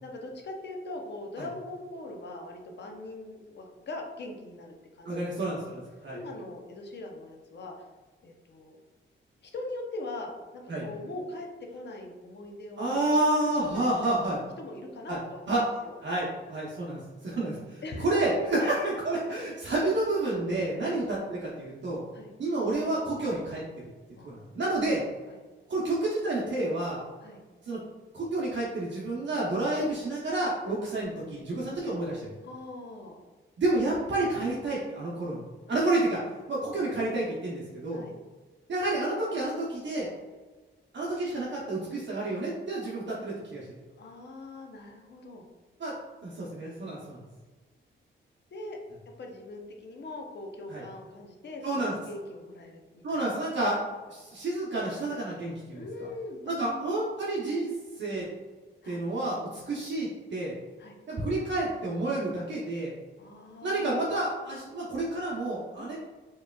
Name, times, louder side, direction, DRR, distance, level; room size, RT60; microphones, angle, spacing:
voice 1, 0.0-5.4 5.6-5.8 6.1-7.9 8.2-8.8 9.4-13.1 13.4-14.2 14.6-16.0 17.8-18.3 18.6-18.8 20.8-21.0 22.1-22.3 24.2-24.4 25.3-25.4 27.2-27.4 32.4-33.2 35.7-35.8 36.5-37.0 37.9-38.1 44.0-45.5 48.5-48.8 49.1-53.2 55.7-56.9 58.8-59.0 60.8-61.0 63.2-64.0 65.8-66.0, left 2 dB, 60° left, 2 dB, 0.7 m, -41 dB
voice 2, 5.0-6.2 10.7-10.8 12.8-14.4 15.1-15.2 15.5-15.6 16.0-22.0 22.4-23.6 24.2-25.0 25.7-27.0 27.6-27.8 28.1-32.2 33.6-36.2 36.5-38.0 38.7-40.1 40.9-43.7 45.8-46.0 46.2-47.2 50.7-50.8 51.6-51.9 53.0-53.8 54.1-55.9 56.5-58.3 58.9-60.5 61.1-62.9 63.6-66.0, right 2 dB, 65° right, -5 dB, 0.8 m, -29 dB
4.5 x 3.1 x 2.3 m, 1.3 s
cardioid pair, 95°, 20 cm